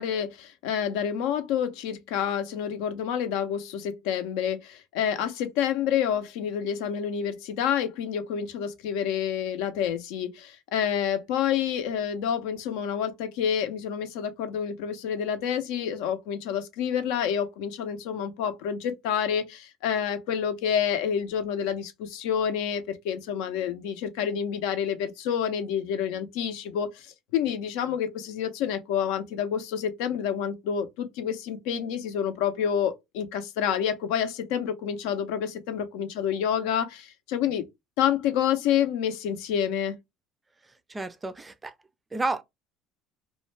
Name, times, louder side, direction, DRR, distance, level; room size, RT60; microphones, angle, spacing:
voice 1, 0.0-37.6 38.0-40.0, left 8 dB, 80° left, 0.5 m, -28 dB
voice 2, 40.9-41.7 42.1-42.4, right 2 dB, 15° right, 0.3 m, -31 dB
2.4 x 2.1 x 3.1 m
supercardioid pair, 100°, 0 cm